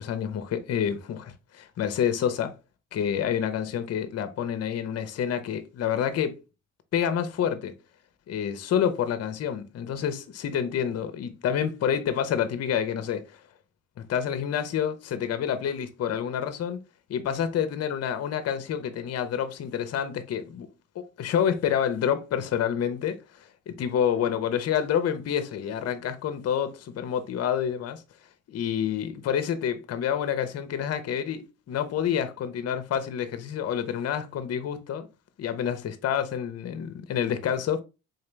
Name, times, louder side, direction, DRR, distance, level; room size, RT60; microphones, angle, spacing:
voice 1, 0.0-2.5 2.9-6.4 6.9-7.7 8.3-13.4 14.0-16.8 17.1-20.7 20.9-28.0 28.5-35.1 35.4-37.8, left 8 dB, 55° left, 0.7 m, -28 dB
3.9 x 2.8 x 3.2 m
cardioid pair, 90°, 30 cm